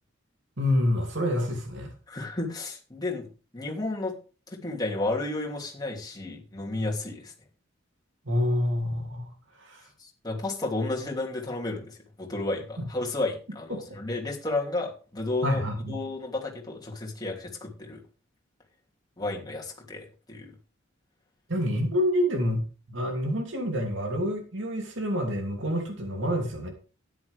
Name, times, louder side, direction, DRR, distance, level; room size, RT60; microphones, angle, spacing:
voice 1, 0.6-1.9 8.2-9.3 9.6-9.9 12.8-12.9 13.7-13.8 15.4-16.0 21.5-26.7, left 1 dB, 65° right, 3 dB, 2.8 m, -27 dB
voice 2, 2.1-3.3 3.5-4.2 4.5-7.3 10.0-15.6 15.9-18.0 19.2-20.5, left 2 dB, 20° left, -2 dB, 2.9 m, -32 dB
13.0 x 10.5 x 3.5 m, 0.35 s
head